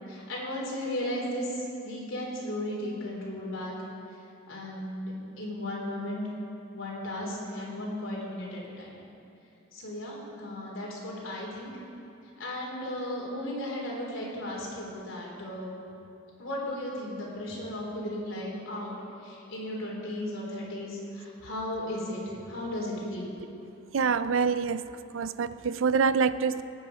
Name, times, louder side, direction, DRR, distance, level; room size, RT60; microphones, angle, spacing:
voice 1, 0.1-3.7 4.5-6.3 6.7-9.0 9.7-11.7 12.4-15.7 16.4-23.3, left 1 dB, 80° left, -3 dB, 3.4 m, -35 dB
voice 2, 23.9-24.8 25.1-26.6, right 5 dB, 75° right, 14 dB, 0.5 m, -26 dB
19.0 x 9.1 x 5.0 m, 2.7 s
head